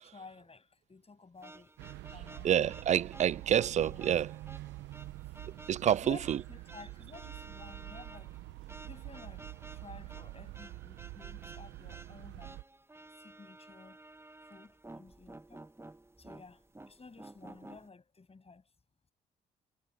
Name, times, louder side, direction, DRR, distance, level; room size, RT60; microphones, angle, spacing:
voice 1, 0.0-1.8 2.1-2.6 3.9-4.0 5.4-12.6 13.2-14.0 14.4-15.6 16.2-18.7, left 4 dB, 30° left, 7.9 m, -53 dB
sound 1, 1.4-17.9, right 2 dB, 15° right, 1.6 m, -53 dB
sound 2, 1.8-12.6, right 18 dB, 75° right, 1.3 m, -46 dB
voice 2, 2.4-4.3 5.7-6.4, right 10 dB, 40° right, 0.4 m, -28 dB
hypercardioid pair, 50°, 19 cm